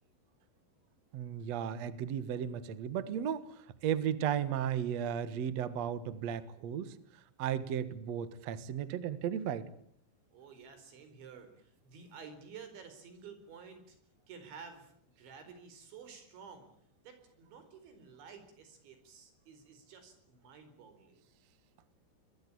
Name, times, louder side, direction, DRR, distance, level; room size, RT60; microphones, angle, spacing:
voice 1, 1.1-7.0 7.4-9.7, right 9 dB, 60° right, 14 dB, 1.8 m, -35 dB
voice 2, 10.3-14.0 14.3-16.7 17.0-21.2, right 6 dB, 80° right, 9 dB, 6.8 m, -52 dB
25.0 x 22.0 x 8.8 m, 0.66 s
omnidirectional pair, 5.2 m